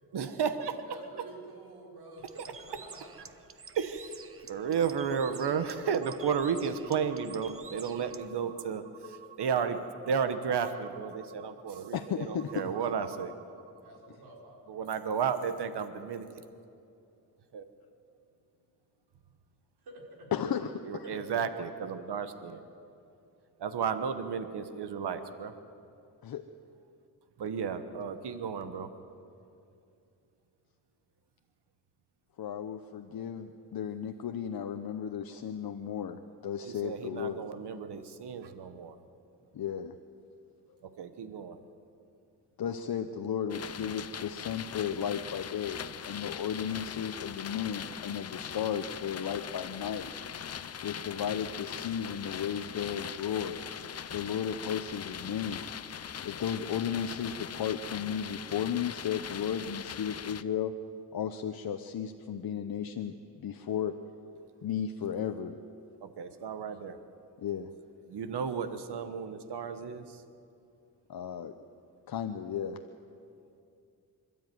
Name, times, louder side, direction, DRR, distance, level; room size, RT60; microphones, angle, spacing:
voice 1, 0.1-1.3 3.7-4.2 4.5-13.4 14.7-16.3 17.5-17.7 20.8-22.6 23.6-25.5 27.4-28.9 36.6-39.0 40.8-41.6 66.0-67.0 68.1-70.2, right 6 dB, 90° right, 10 dB, 1.2 m, -33 dB
voice 2, 0.8-3.2 3.5-3.7 13.8-14.6 19.8-20.3 21.0-21.2, right 1 dB, 70° right, -1 dB, 5.0 m, -50 dB
Bird, 2.2-8.3, right 5 dB, 35° right, 0.9 m, -50 dB
voice 3, 11.9-12.7 20.3-21.0 26.2-26.4 32.4-37.4 39.5-40.0 42.6-50.1 50.8-53.6 54.1-55.6 56.2-60.7 61.1-64.0 64.6-65.6 67.4-67.7 71.1-71.5 72.1-72.8, left 8 dB, 65° left, 7 dB, 0.9 m, -34 dB
sound 1, 43.5-60.4, left 8 dB, 40° left, 0.5 m, -41 dB
26.5 x 13.0 x 9.4 m, 2.6 s
wide cardioid pair, 155°, 39 cm